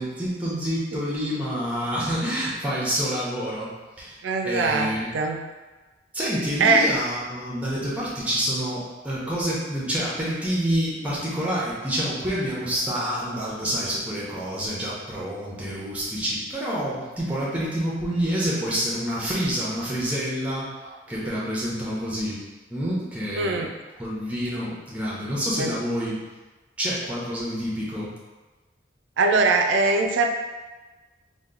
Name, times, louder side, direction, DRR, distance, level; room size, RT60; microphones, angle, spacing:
voice 1, 0.0-3.7 4.0-4.2 4.4-5.1 6.1-20.7 21.1-22.4 22.7-23.6 24.0-26.2 26.8-28.1, equal, 5° right, -7 dB, 0.7 m, -27 dB
voice 2, 4.2-5.5 6.6-6.8 23.4-23.7 25.6-25.7 29.2-30.3, right 3 dB, 75° right, 3 dB, 0.4 m, -21 dB
2.9 x 2.2 x 3.7 m, 1.2 s
head